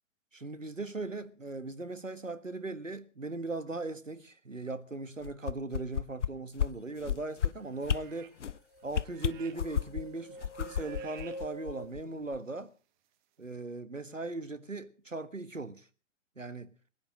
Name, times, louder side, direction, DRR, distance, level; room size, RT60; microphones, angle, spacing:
voice 1, 0.3-8.3 8.8-12.7 13.4-15.9 16.4-16.7, right 2 dB, 85° right, 1.6 m, -39 dB
sound 1, 5.2-6.3 6.6-6.7 7.0-7.5 7.8-8.0 8.4-8.6 8.9-10.0 10.4-12.0 12.3-12.4, left 8 dB, 70° left, 0.8 m, -31 dB
sound 2, 7.4-8.5 8.7-9.8 10.1-11.4 12.0-12.1, right 10 dB, 40° right, 2.3 m, -55 dB
sound 3, 7.8-7.9 8.1-11.9, right 1 dB, 45° left, 4.8 m, -46 dB
21.0 x 10.0 x 6.4 m
figure-of-eight pair, 115°, 37 cm